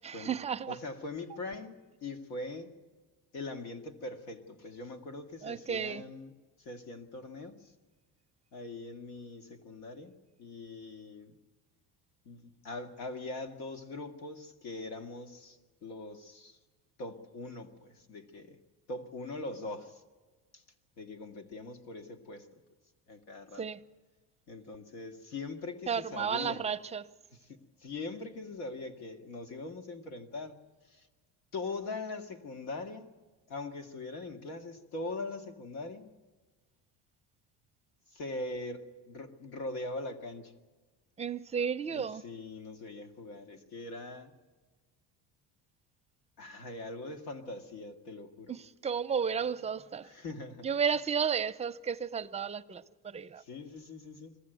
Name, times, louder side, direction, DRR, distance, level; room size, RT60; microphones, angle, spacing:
voice 1, 0.0-0.8 5.4-6.0 23.6-23.8 25.9-27.1 41.2-42.2 48.5-50.1 50.6-53.4, right 7 dB, 20° right, 0.6 m, -33 dB
voice 2, 0.7-2.8 3.3-7.7 8.5-10.1 10.4-11.4 12.2-16.6 17.0-18.6 18.9-20.0 20.5-20.6 21.0-22.6 23.1-23.7 24.5-26.6 27.3-30.6 30.8-31.1 31.5-33.1 33.5-36.1 38.1-40.5 41.9-44.4 46.4-48.6 50.0-50.7 53.4-54.4, left 2 dB, 90° left, 2.0 m, -42 dB
22.5 x 15.5 x 9.1 m
cardioid pair, 130°, 32 cm